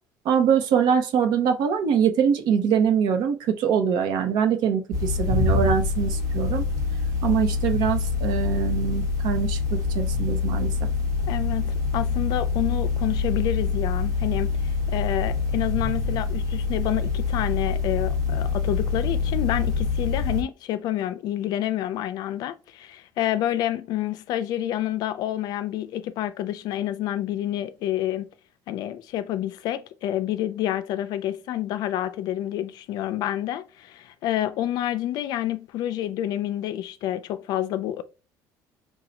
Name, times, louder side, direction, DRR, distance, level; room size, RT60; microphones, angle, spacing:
voice 1, 0.2-6.6 7.2-10.7, right 7 dB, 70° right, 0.8 m, -23 dB
sound 1, 4.9-20.4, left 4 dB, 50° right, 1.2 m, -25 dB
voice 2, 11.3-14.6 14.9-28.3 28.7-38.0, left 12 dB, 60° left, 0.4 m, -28 dB
3.9 x 2.3 x 4.2 m
cardioid pair, 160°, 8 cm